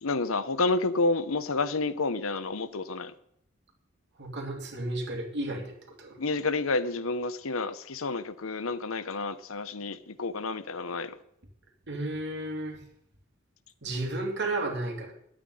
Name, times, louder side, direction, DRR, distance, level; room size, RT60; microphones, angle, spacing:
voice 1, 0.0-3.1 6.2-11.1, left 3 dB, 80° left, 14 dB, 0.9 m, -29 dB
voice 2, 4.2-6.2 11.9-12.8 13.8-15.1, right 2 dB, 55° right, 2 dB, 3.0 m, -33 dB
10.5 x 8.9 x 9.9 m, 0.73 s
head